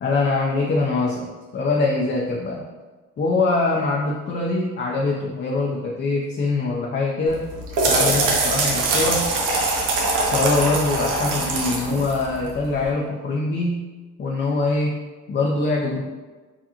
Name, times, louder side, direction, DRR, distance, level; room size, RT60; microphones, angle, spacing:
voice 1, 0.0-2.6 3.2-7.4 7.9-9.3 10.3-13.9 14.2-14.9 15.3-16.0, left 3 dB, 40° left, -1 dB, 0.5 m, -23 dB
sound 1, 7.3-12.9, right 2 dB, 90° right, 0.8 m, -23 dB
4.8 x 2.5 x 2.8 m, 1.3 s
cardioid pair, 90°, 30 cm